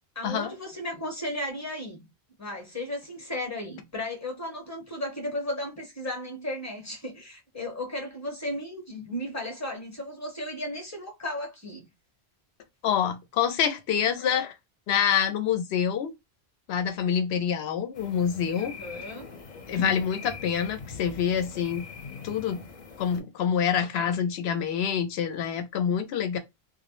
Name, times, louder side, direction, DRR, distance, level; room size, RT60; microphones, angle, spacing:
voice 1, 0.1-2.0 2.4-11.9 18.6-19.3, left 1 dB, 20° left, 0.7 m, -35 dB
voice 2, 12.8-14.5 14.9-16.1 16.7-18.7 19.7-21.8 22.2-22.7 23.0-26.4, left 8 dB, 85° left, 0.8 m, -26 dB
sound 1, 17.9-23.2, left 5 dB, 50° left, 0.7 m, -42 dB
2.1 x 2.1 x 2.9 m
omnidirectional pair, 1.1 m